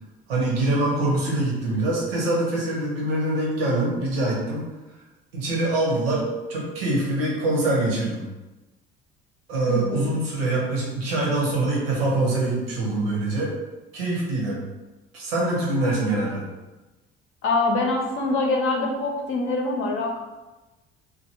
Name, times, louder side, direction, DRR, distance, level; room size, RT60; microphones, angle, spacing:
voice 1, 0.3-4.7 5.3-8.3 9.5-13.5 13.9-14.6 15.1-16.4, right 2 dB, 75° right, -4 dB, 0.8 m, -24 dB
voice 2, 9.7-10.1 17.4-20.2, left 2 dB, 45° left, 1 dB, 0.6 m, -24 dB
2.5 x 2.2 x 2.8 m, 1.1 s
figure-of-eight pair, 55°, 30 cm